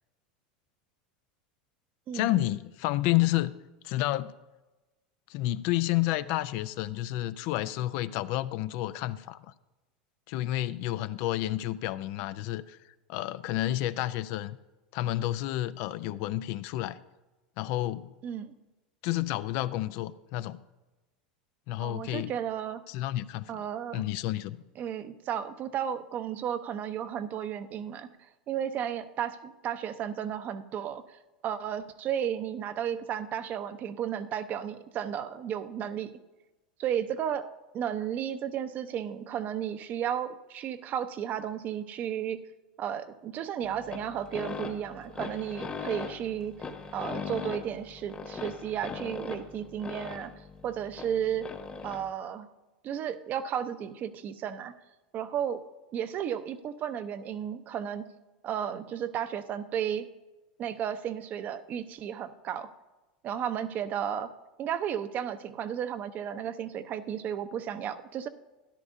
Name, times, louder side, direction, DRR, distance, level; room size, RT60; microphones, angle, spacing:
voice 1, 2.1-3.5 3.8-4.3 5.3-9.4 10.3-12.8 13.1-14.6 14.9-17.0 17.6-18.1 19.0-20.6 21.7-22.3 22.9-23.6 23.9-24.6, left 15 dB, 60° left, 14 dB, 0.4 m, -30 dB
voice 2, 18.2-18.6 21.8-22.8 23.5-24.0 24.8-28.1 28.5-31.0 31.4-36.1 36.8-37.5 37.7-42.4 42.8-46.5 46.9-50.3 50.6-51.5 51.8-52.5 52.8-54.7 55.1-55.6 55.9-58.0 58.4-60.1 60.6-62.7 63.2-64.3 64.6-68.3, right 9 dB, 40° right, 11 dB, 0.7 m, -33 dB
sound 1, 43.6-52.1, left 5 dB, 25° left, 1.2 m, -40 dB
13.0 x 10.5 x 2.6 m, 1.1 s
hypercardioid pair, 110°, 4 cm